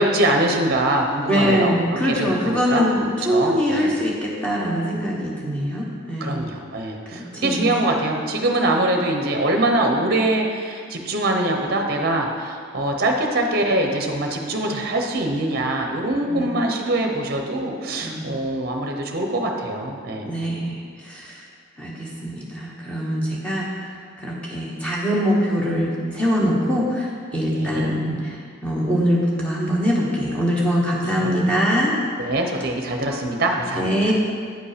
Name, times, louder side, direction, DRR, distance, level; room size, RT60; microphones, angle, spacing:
voice 1, 0.0-1.7 2.1-2.9 3.3-3.9 6.2-20.3 27.5-27.9 31.0-31.4 32.2-34.1, right 1 dB, 45° right, 3 dB, 0.8 m, -23 dB
voice 2, 1.3-6.4 7.3-7.7 16.3-16.5 18.0-18.3 18.7-18.8 20.2-21.4 21.8-32.0 33.8-34.1, equal, 5° left, -5 dB, 1.2 m, -23 dB
9.1 x 5.2 x 5.0 m, 2.1 s
head